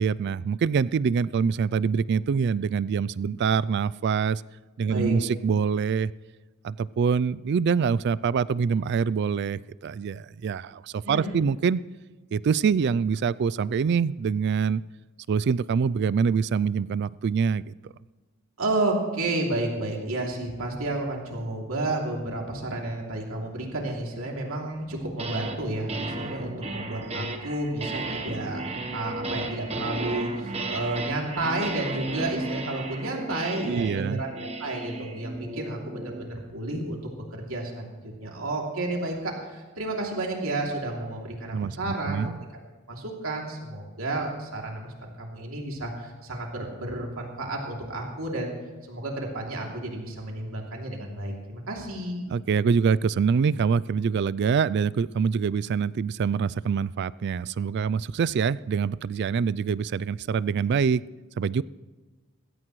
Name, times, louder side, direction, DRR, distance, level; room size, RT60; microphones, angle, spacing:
voice 1, 0.0-4.4 4.8-6.1 6.6-11.8 12.3-14.8 15.3-17.7 33.6-34.2 41.5-42.5 52.3-61.0 61.4-61.6, right 6 dB, 55° right, 19 dB, 0.3 m, -25 dB
voice 2, 11.0-11.4 18.6-28.6 28.9-37.0 37.3-42.4 42.9-48.5 48.9-52.3, right 2 dB, 75° right, -1 dB, 2.8 m, -31 dB
sound 1, 24.9-25.6 25.9-36.3, right 2 dB, 30° right, 1.1 m, -34 dB
20.0 x 16.5 x 3.2 m, 1.3 s
head